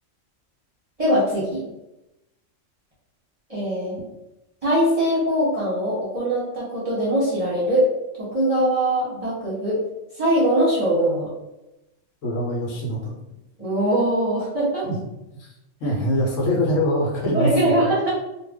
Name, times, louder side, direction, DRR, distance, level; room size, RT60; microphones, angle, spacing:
voice 1, 1.0-1.7 3.5-4.0 4.6-7.9 8.2-9.8 10.1-11.3 13.6-14.9 17.3-18.1, right 1 dB, 30° right, -7 dB, 0.8 m, -22 dB
voice 2, 12.2-13.1 14.8-15.0 15.4-15.5 15.8-17.9, equal, 75° left, -2 dB, 1.1 m, -23 dB
2.5 x 2.3 x 3.4 m, 0.94 s
omnidirectional pair, 1.3 m